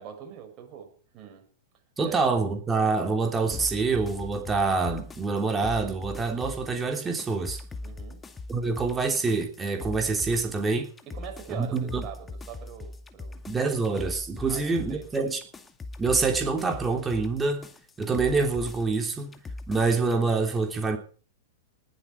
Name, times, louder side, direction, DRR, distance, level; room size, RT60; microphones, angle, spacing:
voice 1, 0.0-1.5 2.0-2.3 7.8-8.2 11.1-13.4 14.5-15.1, right 8 dB, 35° right, 3 dB, 6.7 m, -43 dB
voice 2, 2.0-7.6 8.5-10.9 11.6-12.1 13.5-15.4 16.0-17.7 18.0-19.4 19.7-21.0, right 4 dB, 15° right, 4 dB, 3.2 m, -26 dB
sound 1, 3.5-20.2, left 2 dB, 15° left, 2.1 m, -41 dB
20.0 x 11.0 x 4.6 m, 0.41 s
hypercardioid pair, 105°, 0 cm